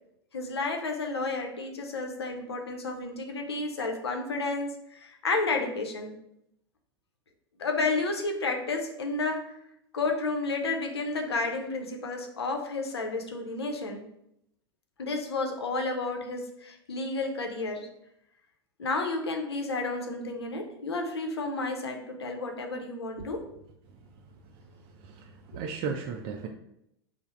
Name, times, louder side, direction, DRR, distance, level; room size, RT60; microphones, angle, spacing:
voice 1, 0.3-6.1 7.6-9.5 9.9-14.0 15.0-17.9 18.8-23.4, left 3 dB, 75° left, 4 dB, 0.6 m, -31 dB
voice 2, 25.0-26.5, right 6 dB, 45° right, 2 dB, 0.4 m, -35 dB
3.3 x 2.0 x 4.2 m, 0.79 s
figure-of-eight pair, 85°, 13 cm